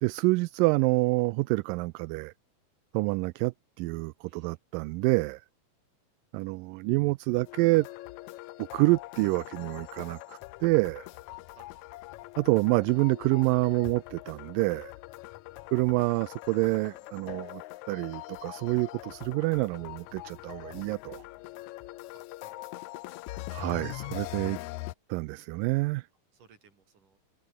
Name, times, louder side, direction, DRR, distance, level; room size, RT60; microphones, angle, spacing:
voice 1, 0.0-2.3 2.9-5.4 6.3-7.9 8.6-11.1 12.4-14.9 15.7-17.6 17.9-21.2 23.5-24.6 25.1-26.0, right 23 dB, 80° right, 2.1 m, -27 dB
voice 2, 4.3-4.6 11.3-11.7 15.5-15.7 22.1-22.5 24.3-24.4 26.3-27.2, right 6 dB, 65° right, 5.8 m, -60 dB
sound 1, 7.5-24.9, left 19 dB, 90° left, 1.6 m, -43 dB
omnidirectional pair, 4.0 m